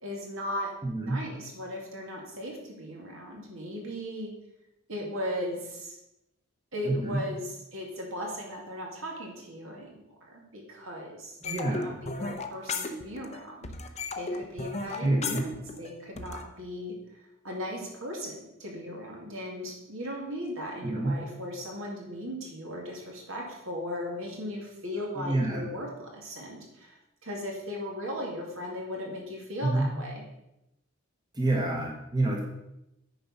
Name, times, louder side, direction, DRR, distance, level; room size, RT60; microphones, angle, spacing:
voice 1, 0.0-0.7 1.0-4.3 4.9-6.0 6.7-13.7 14.2-16.9 17.4-30.2, equal, 70° right, -1 dB, 2.3 m, -37 dB
voice 2, 0.8-1.2 6.8-7.2 11.5-12.0 15.0-15.4 20.8-21.2 25.2-25.7 29.6-29.9 31.3-32.4, right 2 dB, 20° right, -1 dB, 1.2 m, -28 dB
sound 1, 11.4-13.4 13.6-16.4, left 3 dB, 35° left, 0.7 m, -35 dB
9.6 x 4.7 x 5.5 m, 0.87 s
head